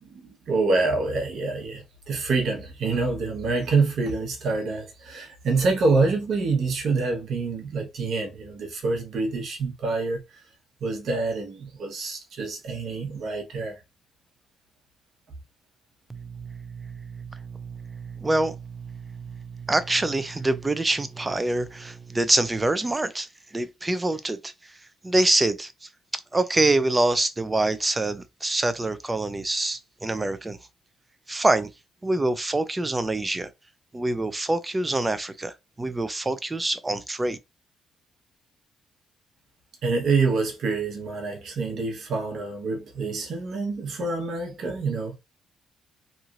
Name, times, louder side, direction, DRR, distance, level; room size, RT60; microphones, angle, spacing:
voice 1, 0.0-10.4 10.8-13.8 39.8-45.2, right 3 dB, 65° right, 1.1 m, -26 dB
voice 2, 16.1-23.3 23.5-24.5 25.0-25.7 26.3-30.6 31.3-31.7 32.0-33.5 33.9-37.4, right 2 dB, 20° right, 0.4 m, -26 dB
3.1 x 2.6 x 2.4 m
cardioid pair, 90°, 0 cm